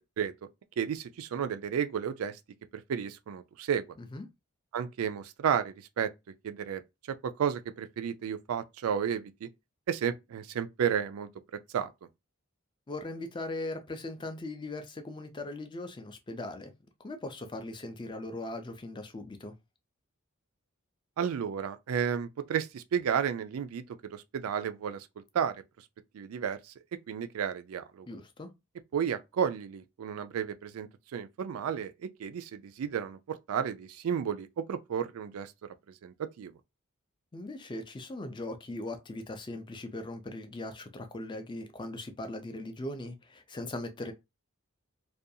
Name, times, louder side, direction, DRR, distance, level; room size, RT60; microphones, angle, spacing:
voice 1, 0.8-2.4 2.9-3.9 4.7-6.1 6.4-6.8 7.2-9.5 9.9-11.3 11.7-11.9 21.2-23.8 24.1-25.1 25.3-25.6 26.1-26.6 27.1-28.1 28.9-35.5 36.0-36.5, right 8 dB, 90° right, 0.4 m, -32 dB
voice 2, 12.9-16.7 17.0-19.5 28.1-28.5 37.3-44.1, left 2 dB, 20° left, 0.4 m, -39 dB
2.5 x 2.2 x 2.6 m
head